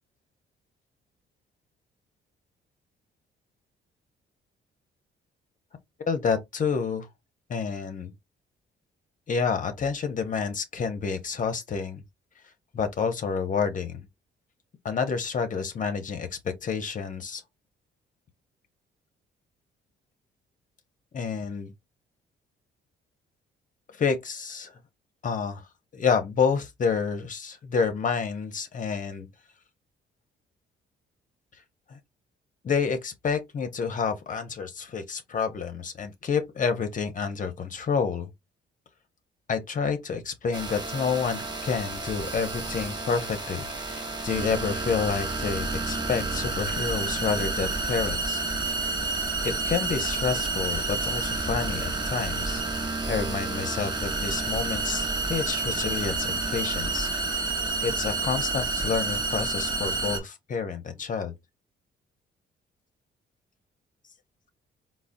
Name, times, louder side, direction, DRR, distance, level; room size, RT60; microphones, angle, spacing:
voice 1, 6.1-7.1 7.5-8.1 9.3-12.0 12.7-14.1 14.8-17.4 21.1-21.7 23.9-24.7 25.2-25.6 25.9-29.3 31.9-32.0 32.6-38.3 39.5-48.4 49.4-52.6 53.1-57.1 57.3-61.3, left 5 dB, 40° left, 0.6 m, -29 dB
sound 1, 40.5-60.2, right 3 dB, 20° right, 0.7 m, -30 dB
3.7 x 2.0 x 2.5 m
cardioid pair, 90°, 20 cm